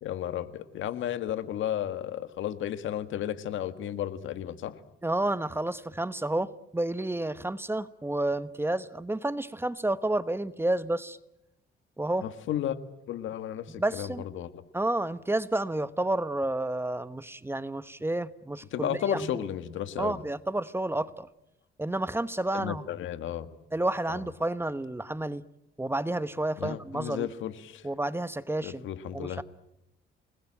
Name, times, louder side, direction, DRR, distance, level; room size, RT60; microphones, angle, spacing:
voice 1, 0.0-4.7 12.2-12.7 13.1-14.6 18.7-20.2 22.5-23.5 24.1-24.2 26.6-27.8 28.6-29.4, left 10 dB, 80° left, 11 dB, 1.7 m, -33 dB
voice 2, 5.0-11.2 12.0-12.3 13.8-14.2 14.7-19.3 20.0-21.3 21.8-22.8 23.7-25.4 25.8-27.3 27.8-28.9 29.1-29.4, right 1 dB, 10° right, 14 dB, 1.0 m, -30 dB
28.0 x 20.5 x 8.9 m, 0.86 s
cardioid pair, 90°, 20 cm